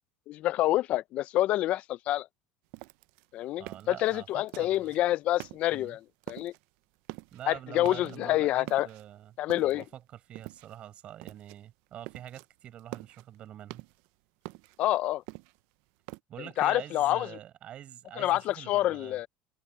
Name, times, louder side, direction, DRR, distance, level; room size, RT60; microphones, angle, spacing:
voice 1, 0.3-2.3 3.3-6.0 6.3-6.5 7.5-8.9 9.4-9.8 14.8-15.2 16.6-17.3 18.2-19.3, left 15 dB, 55° left, 0.5 m, -27 dB
sound 1, 2.7-5.0 5.4-5.9 6.2-6.6 7.0-7.5 7.8-8.3 8.7-10.0 10.4-10.9 11.2-11.6 11.9-12.5 12.8-14.1 14.5-16.2, right 23 dB, 75° right, 0.5 m, -45 dB
voice 2, 3.6-4.9 5.7-6.0 7.3-9.3 9.6-13.8 16.3-19.2, right 11 dB, 50° right, 6.1 m, -45 dB
open air
supercardioid pair, 110°, 3 cm